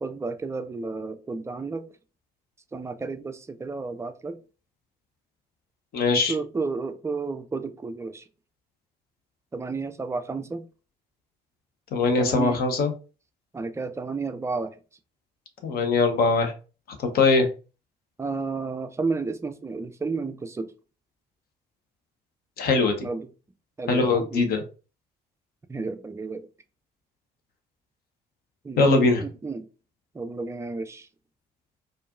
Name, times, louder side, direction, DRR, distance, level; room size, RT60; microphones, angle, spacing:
voice 1, 0.0-1.9 2.7-4.4 6.3-8.2 9.5-10.6 12.2-12.6 13.5-14.7 18.2-20.7 23.0-23.3 23.8-24.5 25.7-26.5 28.6-29.7 30.1-31.1, right 4 dB, 15° right, 0.4 m, -32 dB
voice 2, 5.9-6.3 11.9-12.9 15.6-16.5 17.0-17.5 22.6-23.1 23.9-24.6 28.8-29.2, left 3 dB, 50° left, 0.9 m, -21 dB
4.5 x 2.5 x 2.4 m
figure-of-eight pair, 50°, 21 cm